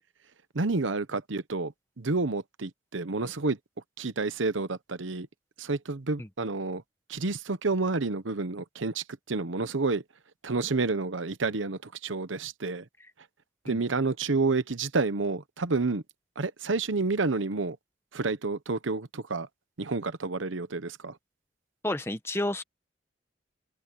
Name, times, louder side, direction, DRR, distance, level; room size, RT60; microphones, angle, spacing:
voice 1, 0.5-3.6 4.0-5.3 5.6-6.8 7.1-10.0 10.4-12.8 13.6-16.0 16.4-17.8 18.1-19.5 19.8-21.2, right 3 dB, 85° right, 1.0 m, -29 dB
voice 2, 21.8-22.6, left 1 dB, 15° left, 1.1 m, -30 dB
head